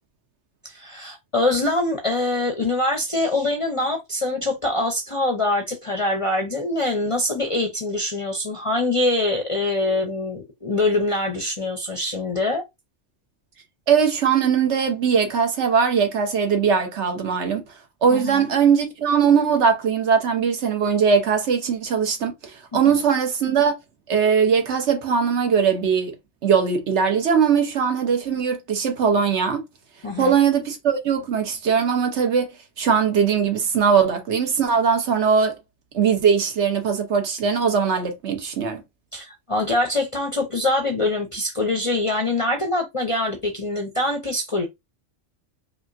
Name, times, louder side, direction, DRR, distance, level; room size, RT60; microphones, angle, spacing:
voice 1, 0.6-12.6 18.1-18.5 22.7-23.0 30.0-30.4 39.1-44.7, left 2 dB, 40° left, 0.5 m, -24 dB
voice 2, 13.9-17.6 18.0-22.3 22.7-23.8 24.1-26.1 26.4-29.6 30.2-35.5 35.9-38.8, right 6 dB, 65° right, 1.1 m, -20 dB
4.8 x 2.4 x 2.6 m
omnidirectional pair, 1.3 m